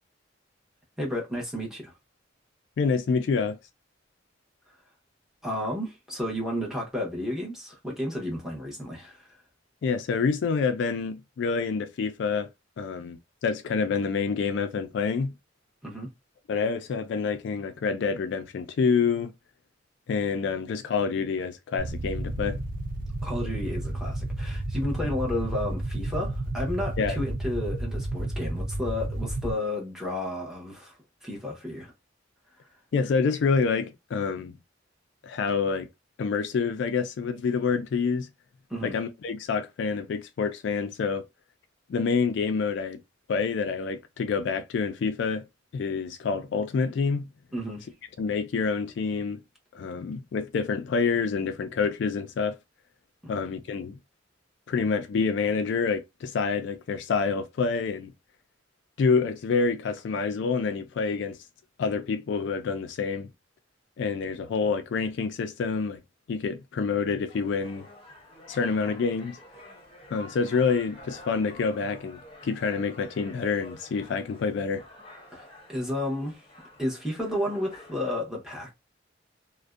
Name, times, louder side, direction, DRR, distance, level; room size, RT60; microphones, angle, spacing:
voice 1, 1.0-1.9 5.4-9.3 15.8-16.1 23.2-30.9 31.2-31.9 38.7-38.9 47.5-47.9 53.2-53.4 75.3-76.5 76.8-78.7, left 1 dB, 5° right, 0.9 m, -32 dB
voice 2, 2.8-3.6 9.8-12.5 12.8-15.3 16.5-19.3 20.1-22.6 27.0-27.2 32.9-34.5 35.2-35.9 36.2-38.3 38.8-41.2 41.9-43.0 43.3-45.4 45.7-47.3 48.2-49.4 49.7-52.6 53.3-54.0 54.7-58.1 59.0-61.4 61.8-63.3 64.0-66.0 66.3-67.8 68.5-69.4 70.1-74.8, left 5 dB, 65° left, 0.3 m, -27 dB
sound 1, 21.8-29.5, right 1 dB, 45° right, 0.5 m, -31 dB
sound 2, 67.3-78.1, left 1 dB, 30° left, 0.8 m, -48 dB
2.5 x 2.1 x 2.3 m
head